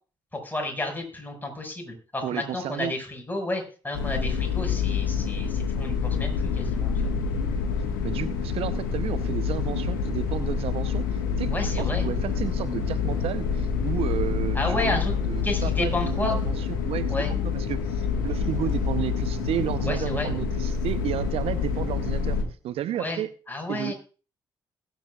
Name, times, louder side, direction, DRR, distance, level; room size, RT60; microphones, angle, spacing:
voice 1, 0.4-6.9 11.5-12.1 14.5-15.1 15.4-16.4 17.1-17.3 19.8-20.3 23.0-23.2 23.5-23.9, left 2 dB, 15° left, 2 dB, 5.7 m, -31 dB
voice 2, 2.2-3.0 8.0-22.4 22.6-23.3 23.7-23.9, right 11 dB, 65° right, 13 dB, 0.8 m, -32 dB
sound 1, 3.9-22.4, left 5 dB, 85° left, 1.6 m, -27 dB
Motorcycle, 9.0-22.7, right 2 dB, 35° right, 5.1 m, -47 dB
20.5 x 9.1 x 2.4 m, 0.36 s
hypercardioid pair, 45°, 11 cm